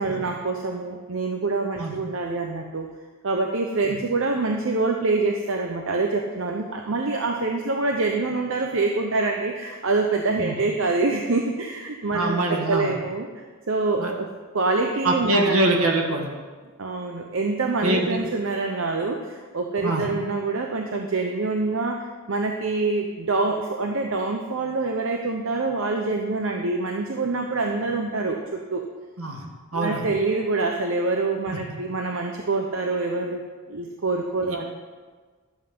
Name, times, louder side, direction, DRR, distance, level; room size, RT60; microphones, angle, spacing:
voice 1, 0.0-2.9 3.2-14.3 14.5-15.9 16.8-28.8 29.7-33.4 33.7-34.7, right 3 dB, 60° right, 3 dB, 0.8 m, -26 dB
voice 2, 12.1-12.9 14.0-14.1 15.0-16.3 17.8-18.2 19.8-20.0 29.2-29.4 29.7-30.0 34.5-34.6, right 1 dB, 75° right, 1 dB, 1.8 m, -23 dB
12.5 x 7.6 x 5.5 m, 1.5 s
head